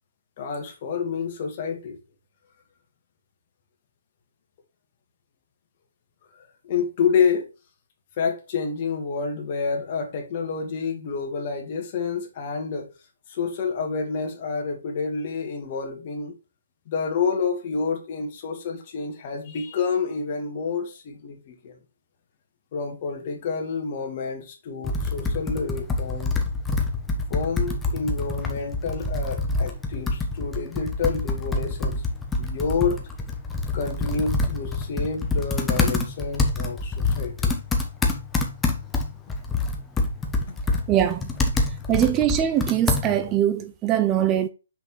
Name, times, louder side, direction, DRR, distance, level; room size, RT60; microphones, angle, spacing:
voice 1, 0.4-2.0 6.6-7.5 8.2-12.9 13.3-16.3 16.9-21.7 22.7-26.4 27.3-32.0 32.4-33.0 33.7-37.5 38.0-38.1 40.5-40.8, left 5 dB, 40° left, 1.9 m, -28 dB
Computer keyboard, 24.8-43.4, left 3 dB, 10° left, 1.0 m, -26 dB
voice 2, 40.9-41.3 41.9-44.5, right 11 dB, 20° right, 0.4 m, -22 dB
6.0 x 5.1 x 3.1 m
figure-of-eight pair, 135°, 0 cm